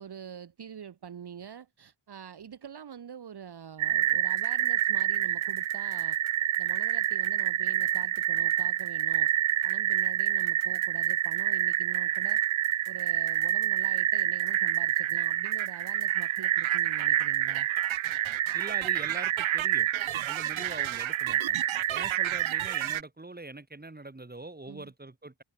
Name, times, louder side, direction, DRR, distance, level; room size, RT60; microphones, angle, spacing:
voice 1, 0.0-6.2 6.6-9.3 9.6-12.4 12.8-17.7 24.7-24.9, right 8 dB, 55° right, 1.4 m, -45 dB
sound 1, 3.8-23.0, right 12 dB, 80° right, 0.7 m, -28 dB
voice 2, 18.5-19.9 20.3-25.4, right 2 dB, 20° right, 7.7 m, -43 dB
wide cardioid pair, 130°, 47 cm